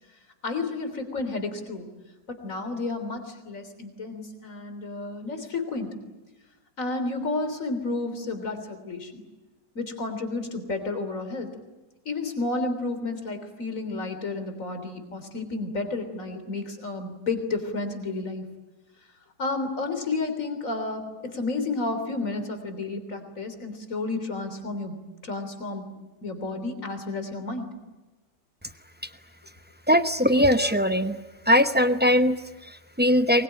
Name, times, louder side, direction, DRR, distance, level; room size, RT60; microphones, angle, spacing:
voice 1, 0.4-1.9 2.3-5.9 6.8-9.2 9.8-11.5 12.1-18.4 19.4-24.9 25.2-25.9 26.2-27.7, left 3 dB, 45° left, 7 dB, 3.8 m, -31 dB
voice 2, 29.9-31.2 31.5-33.4, equal, 15° right, 9 dB, 0.4 m, -21 dB
23.5 x 22.0 x 9.9 m, 1.1 s
omnidirectional pair, 1.9 m